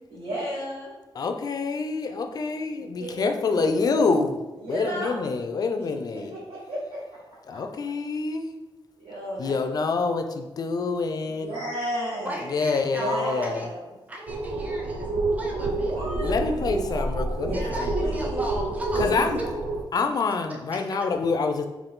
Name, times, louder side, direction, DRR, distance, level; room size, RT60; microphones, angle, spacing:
voice 1, 0.1-0.9 3.0-4.0 4.6-5.3 5.8-5.9 6.1-7.0 7.5-7.6 9.0-9.5 11.4-12.4 12.9-13.9 15.7-16.3 17.4-18.6 18.9-19.3, right 1 dB, 85° right, -9 dB, 1.3 m, -34 dB
voice 2, 1.1-4.4 4.7-6.4 7.4-8.5 9.4-11.5 12.5-13.7 16.2-18.1 19.0-19.4 19.9-21.7, left 4 dB, 45° left, 6 dB, 0.3 m, -26 dB
voice 3, 12.2-13.7 14.1-15.9 17.5-19.5 20.5-21.1, equal, 15° right, -1 dB, 0.6 m, -35 dB
sound 1, 14.3-19.8, right 2 dB, 70° right, 0.4 m, -28 dB
3.8 x 2.4 x 3.6 m, 1.1 s
wide cardioid pair, 155°, 9 cm